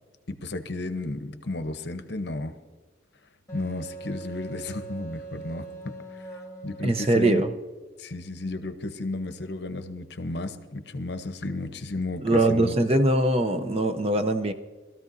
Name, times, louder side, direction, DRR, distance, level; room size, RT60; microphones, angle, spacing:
voice 1, 0.3-2.5 3.5-5.9 6.6-7.4 8.0-12.7, left 2 dB, 60° left, 9 dB, 0.8 m, -33 dB
Wind instrument woodwind instrument, 3.5-7.6, right 3 dB, 15° left, 2.1 m, -42 dB
voice 2, 6.8-7.5 12.2-14.5, right 1 dB, 30° right, 7 dB, 0.6 m, -22 dB
21.0 x 13.5 x 2.7 m, 1.3 s
head